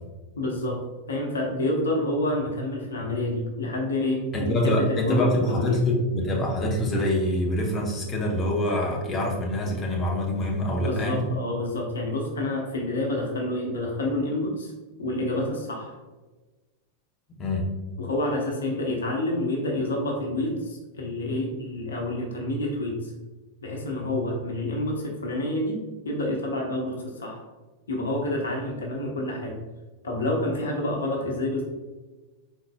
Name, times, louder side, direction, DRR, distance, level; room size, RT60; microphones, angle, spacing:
voice 1, 0.4-5.8 10.9-14.7 15.0-16.0 18.0-23.1 23.6-25.8 26.0-27.5 27.9-29.6 30.0-31.6, left 1 dB, 70° left, 0 dB, 0.8 m, -28 dB
voice 2, 4.3-11.3 17.4-17.7, left 1 dB, 25° left, -1 dB, 0.8 m, -25 dB
4.5 x 4.0 x 2.3 m, 1.2 s
figure-of-eight pair, 90°, 0 cm